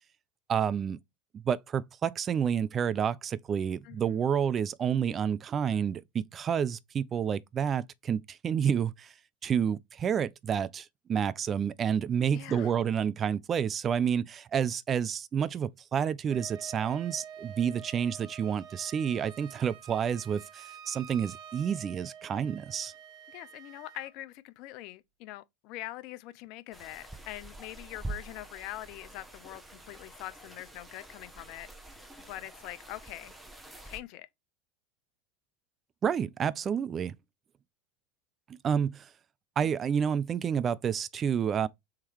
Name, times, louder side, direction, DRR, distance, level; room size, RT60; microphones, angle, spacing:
voice 1, 0.5-1.0 1.3-9.1 9.4-22.9 36.0-37.2 38.6-39.1 39.6-41.7, right 8 dB, 30° right, 0.4 m, -29 dB
voice 2, 3.8-4.2 12.3-12.7 23.3-31.7 32.3-33.3 33.8-34.3 39.6-39.7, left 16 dB, 55° left, 0.5 m, -43 dB
Wind instrument woodwind instrument, 16.3-24.1, right 8 dB, 55° right, 0.9 m, -48 dB
sound 1, 26.7-34.0, right 2 dB, 5° right, 0.9 m, -46 dB
3.7 x 3.0 x 4.4 m
hypercardioid pair, 85°, 0 cm